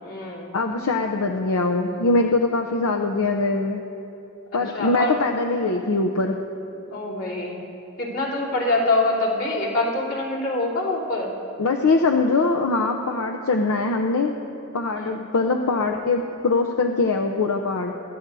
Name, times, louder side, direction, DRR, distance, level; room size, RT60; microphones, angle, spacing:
voice 1, 0.0-0.5 4.5-5.1 6.9-7.6 8.0-11.3 14.9-15.1, left 2 dB, 60° left, -6 dB, 3.4 m, -25 dB
voice 2, 0.5-3.8 4.5-6.4 11.6-14.3 14.7-18.0, left 3 dB, 85° left, 3 dB, 0.6 m, -22 dB
23.0 x 13.0 x 2.7 m, 2.8 s
head